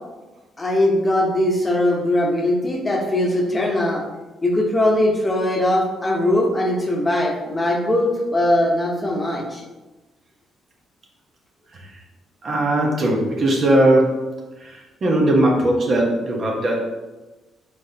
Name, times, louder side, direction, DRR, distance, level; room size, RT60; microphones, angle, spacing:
voice 1, 0.6-4.0 4.4-9.6, left 1 dB, 20° left, -1 dB, 1.0 m, -20 dB
voice 2, 12.4-14.2 14.6-16.8, right 1 dB, 50° right, -1 dB, 1.0 m, -19 dB
4.7 x 4.0 x 2.8 m, 1.1 s
cardioid pair, 90°, 0 cm